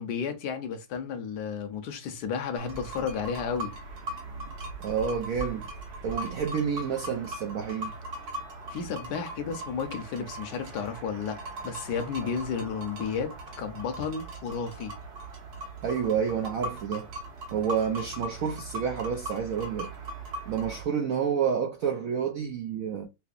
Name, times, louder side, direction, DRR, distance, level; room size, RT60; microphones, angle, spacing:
voice 1, 0.0-3.7 8.7-14.9, left 6 dB, 70° left, 1.2 m, -33 dB
sound 1, 2.6-20.9, right 1 dB, 60° right, 1.5 m, -39 dB
voice 2, 4.8-5.7 6.0-7.9 15.8-17.1 17.5-19.9 20.5-23.1, right 7 dB, 75° right, 0.7 m, -29 dB
5.6 x 2.1 x 2.4 m
omnidirectional pair, 2.0 m